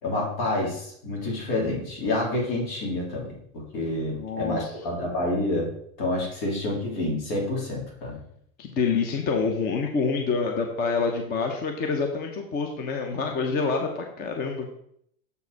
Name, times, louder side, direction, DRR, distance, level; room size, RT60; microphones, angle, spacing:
voice 1, 0.0-5.7 6.0-8.2, left 2 dB, 75° left, -2 dB, 3.1 m, -28 dB
voice 2, 4.0-4.7 8.6-14.7, left 4 dB, 30° left, 3 dB, 0.8 m, -27 dB
6.8 x 4.7 x 4.7 m, 0.70 s
supercardioid pair, 155°, 30 cm